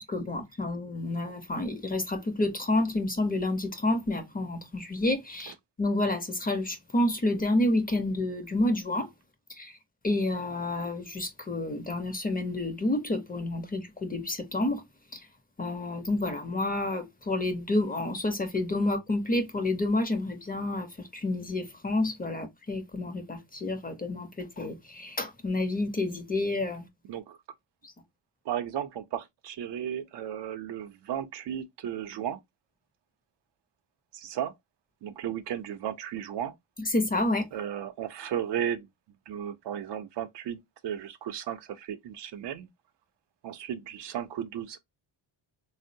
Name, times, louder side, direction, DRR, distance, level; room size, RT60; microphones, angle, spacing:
voice 1, 0.0-9.1 9.6-9.7 10.0-14.8 15.1-15.2 15.6-26.8 27.8-27.9 36.8-37.5, left 2 dB, 20° left, 0.5 m, -29 dB
voice 2, 28.5-32.4 34.1-34.5 35.0-36.5 37.5-38.9 39.3-42.7 43.4-44.8, right 10 dB, 65° right, 0.6 m, -35 dB
3.6 x 2.0 x 2.6 m
cardioid pair, 115°, 45 cm